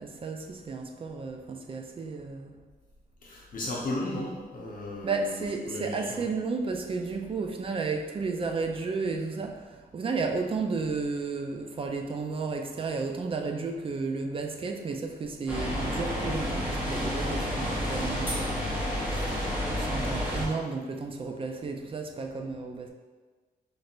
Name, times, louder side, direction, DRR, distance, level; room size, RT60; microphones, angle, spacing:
voice 1, 0.0-2.6 5.0-18.7 19.0-19.5 19.8-22.9, right 4 dB, 35° right, 3 dB, 0.4 m, -33 dB
voice 2, 3.2-6.2, left 1 dB, 55° left, -4 dB, 0.7 m, -35 dB
sound 1, 15.5-20.5, equal, 10° right, 1.1 m, -30 dB
3.2 x 2.4 x 4.3 m, 1.4 s
wide cardioid pair, 150°, 17 cm